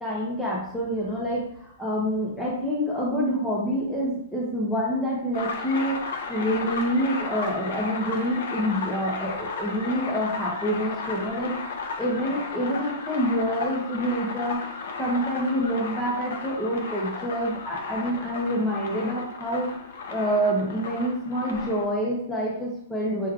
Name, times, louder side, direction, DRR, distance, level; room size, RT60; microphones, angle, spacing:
voice 1, 0.0-6.0 6.3-11.5 12.0-14.7 15.0-19.7 20.1-23.3, equal, 5° left, -5 dB, 0.7 m, -27 dB
sound 1, 5.3-21.8, left 4 dB, 65° left, 0.7 m, -34 dB
5.7 x 3.1 x 2.4 m, 0.68 s
hypercardioid pair, 155°, 0 cm